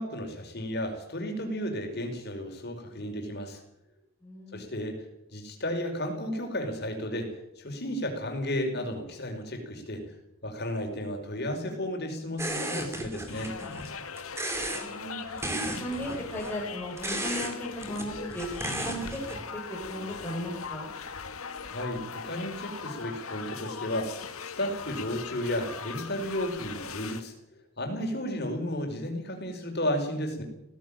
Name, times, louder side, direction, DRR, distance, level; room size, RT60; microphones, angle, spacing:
voice 1, 0.0-3.6 4.5-5.0 5.3-10.0 10.4-13.5 21.7-27.3 27.8-30.4, left 1 dB, 45° left, 3 dB, 5.3 m, -33 dB
voice 2, 4.2-4.6 14.7-18.5 18.8-19.2 19.5-20.9, equal, 10° left, -3 dB, 5.4 m, -36 dB
sound 1, 12.4-13.9 14.2-14.9 15.4-16.5 17.0-17.5 17.8-19.4, right 1 dB, 10° right, 3.0 m, -34 dB
sound 2, 13.3-27.2, left 6 dB, 75° left, 1.9 m, -40 dB
18.0 x 17.0 x 9.0 m, 0.83 s
head